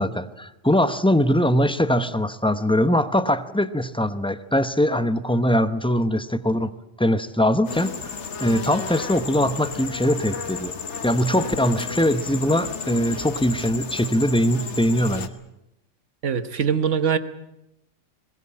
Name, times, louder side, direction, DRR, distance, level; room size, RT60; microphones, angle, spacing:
voice 1, 0.0-6.7 7.0-8.1 8.4-10.7 11.0-15.3, equal, 5° left, 12 dB, 0.6 m, -22 dB
sound 1, 7.7-15.3, left 6 dB, 65° left, 1.5 m, -33 dB
voice 2, 16.2-17.2, right 7 dB, 75° right, 12 dB, 1.5 m, -22 dB
22.0 x 19.5 x 8.8 m, 0.88 s
omnidirectional pair, 1.3 m